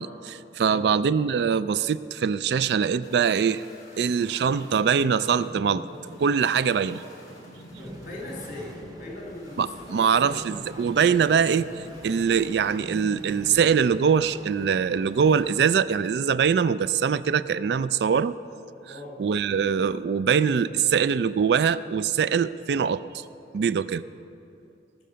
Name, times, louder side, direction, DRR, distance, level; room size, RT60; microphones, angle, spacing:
voice 1, 0.0-3.6 4.0-5.8 6.2-7.0 9.6-18.4 19.2-23.2 23.5-24.0, right 6 dB, 65° right, 16 dB, 0.3 m, -23 dB
sound 1, 3.0-13.7, equal, 20° left, 2.6 m, -44 dB
voice 2, 7.7-10.4 18.8-19.1, left 1 dB, 45° left, -2 dB, 3.5 m, -40 dB
sound 2, 7.7-15.5, right 1 dB, 20° right, 0.7 m, -47 dB
19.0 x 6.5 x 6.8 m, 2.7 s
head